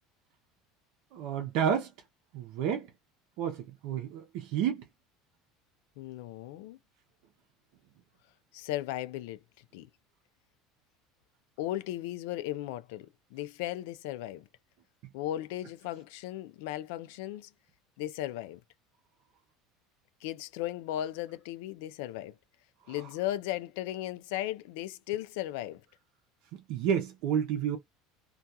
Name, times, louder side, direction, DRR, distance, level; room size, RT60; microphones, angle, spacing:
voice 1, 1.1-1.9 2.3-2.9 3.4-4.8 22.9-23.0 26.5-27.8, right 8 dB, 65° right, 0.6 m, -30 dB
voice 2, 6.0-6.8 8.5-9.4 9.7-9.9 11.6-14.5 15.1-17.5 18.0-18.6 20.2-22.3 22.9-25.8, left 14 dB, 80° left, 0.4 m, -36 dB
2.3 x 2.3 x 2.7 m
cardioid pair, 150°, 0 cm